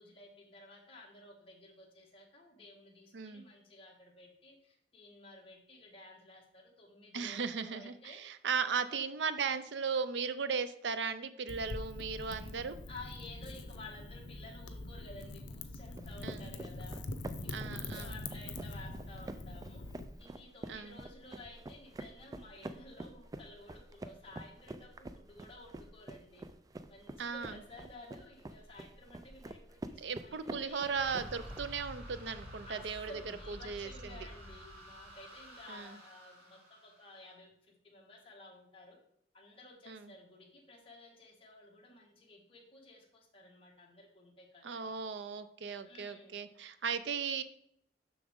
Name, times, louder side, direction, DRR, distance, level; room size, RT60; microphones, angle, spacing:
voice 1, 0.0-8.2 8.7-8.9 12.9-17.0 17.4-19.9 20.2-26.4 26.9-31.0 32.7-39.0 39.3-44.9 45.8-46.4, left 2 dB, 30° left, -2 dB, 1.6 m, -54 dB
voice 2, 3.1-3.4 7.1-12.8 16.2-16.5 17.5-18.2 20.7-21.0 27.2-27.5 30.0-33.1 33.5-34.2 35.7-36.0 39.9-40.1 44.6-47.4, right 5 dB, 85° right, 12 dB, 0.5 m, -37 dB
Wind / Fire, 11.5-20.1, left 2 dB, 90° left, 0.6 m, -44 dB
sound 1, 16.0-31.6, right 2 dB, 20° right, 0.3 m, -47 dB
sound 2, 30.9-37.3, equal, 60° right, 2.1 m, -50 dB
7.0 x 6.0 x 3.7 m, 0.72 s
head